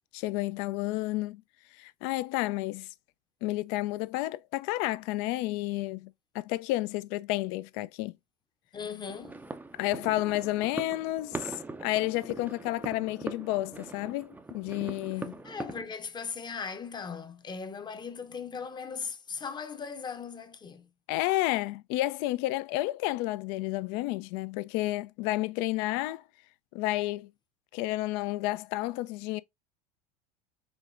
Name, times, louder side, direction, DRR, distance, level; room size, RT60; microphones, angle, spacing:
voice 1, 0.1-1.4 1.7-2.9 3.4-8.2 9.7-11.5 11.8-15.4 21.1-26.2 26.7-27.3 27.7-29.4, left 18 dB, 55° left, 0.4 m, -31 dB
voice 2, 8.7-9.4 15.4-20.9, left 5 dB, 20° left, 0.7 m, -38 dB
sound 1, 9.1-15.8, right 3 dB, 10° right, 0.5 m, -41 dB
5.2 x 3.4 x 2.5 m
hypercardioid pair, 80°, 21 cm